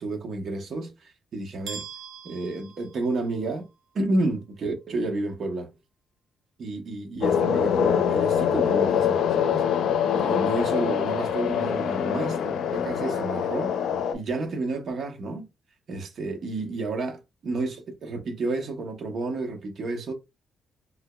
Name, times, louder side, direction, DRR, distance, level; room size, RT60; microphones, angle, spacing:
voice 1, 0.0-1.9 2.2-3.7 3.9-5.7 6.6-9.6 10.1-13.8 14.1-15.5 15.9-20.1, right 2 dB, 50° right, 0.9 m, -31 dB
sound 1, 1.7-3.6, right 6 dB, 75° right, 0.8 m, -42 dB
sound 2, 7.2-14.1, left 8 dB, 80° left, 0.5 m, -24 dB
3.6 x 2.8 x 2.2 m
cardioid pair, 120°, 0 cm